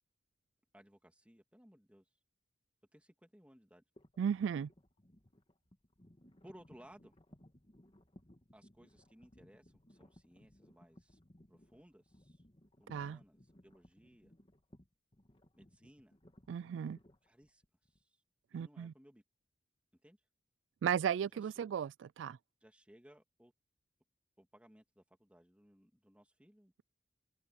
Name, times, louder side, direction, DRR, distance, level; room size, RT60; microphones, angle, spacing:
voice 1, 0.7-2.1 2.9-3.8 6.4-7.1 8.5-11.2 11.5-12.4 12.8-14.3 15.5-16.2 17.2-17.6 17.9-18.2 18.5-19.2 19.9-20.2 21.3-21.7 22.6-23.5 24.4-26.8, equal, 5° right, 2.7 m, -62 dB
sound 1, 4.0-18.0, left 1 dB, 30° left, 1.9 m, -63 dB
voice 2, 4.2-4.7 12.9-13.2 16.5-17.0 18.5-18.9 20.8-22.4, right 8 dB, 85° right, 0.3 m, -35 dB
head